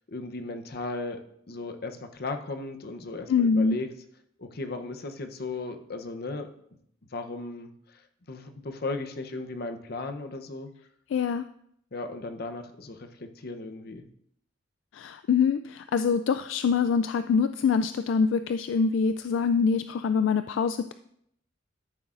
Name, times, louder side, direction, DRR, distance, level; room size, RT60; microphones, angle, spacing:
voice 1, 0.1-1.2 1.5-3.9 4.4-6.5 7.1-10.7 11.9-14.1, left 3 dB, 55° left, 7 dB, 0.8 m, -36 dB
voice 2, 3.3-3.8 11.1-11.4 14.9-20.9, left 5 dB, 75° left, 10 dB, 0.3 m, -24 dB
13.0 x 7.1 x 2.5 m, 0.73 s
head